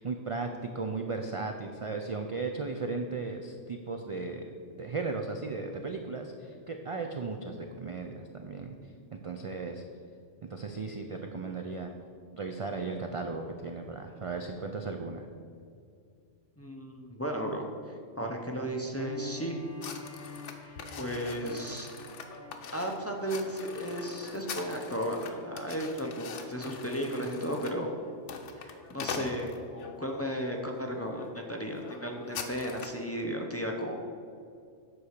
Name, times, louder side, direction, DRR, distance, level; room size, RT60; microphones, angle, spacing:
voice 1, 0.0-8.8 9.1-9.8 10.4-11.9 12.3-15.3, right 3 dB, 60° right, 4 dB, 0.3 m, -36 dB
voice 2, 16.6-17.7 18.2-19.5 20.6-21.9 22.7-27.9 28.6-33.9, equal, 15° left, 1 dB, 0.5 m, -34 dB
Bowed string instrument, 18.9-25.0, left 3 dB, 35° left, 1.1 m, -47 dB
sound 1, 19.8-29.9 30.5-30.8 31.1-31.3 31.5-33.0, left 5 dB, 80° left, 1.1 m, -43 dB
8.4 x 4.8 x 6.5 m, 2.3 s
omnidirectional pair, 1.2 m